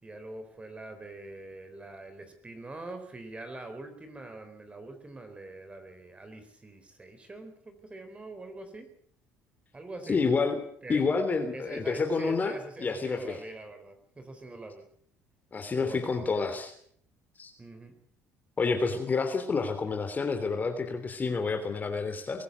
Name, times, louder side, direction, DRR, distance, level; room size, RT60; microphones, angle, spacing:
voice 1, 0.0-8.9 9.7-10.2 10.8-11.1 11.5-14.9 15.8-16.5 17.6-18.0, right 2 dB, 20° right, 7 dB, 4.0 m, -44 dB
voice 2, 10.1-10.6 10.9-13.4 15.5-16.7 17.4-17.5 18.6-22.4, left 4 dB, 30° left, 6 dB, 3.0 m, -29 dB
23.0 x 14.0 x 8.3 m, 0.64 s
supercardioid pair, 90°, 6 cm